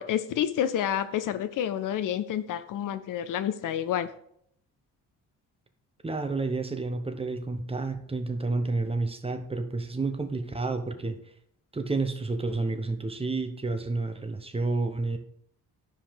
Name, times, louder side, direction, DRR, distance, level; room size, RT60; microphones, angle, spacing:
voice 1, 0.0-4.1, left 10 dB, 45° left, 12 dB, 0.6 m, -29 dB
voice 2, 6.0-11.2 11.7-15.2, right 3 dB, 10° right, 6 dB, 0.8 m, -30 dB
12.5 x 5.0 x 3.3 m, 0.69 s
figure-of-eight pair, 40°, 47 cm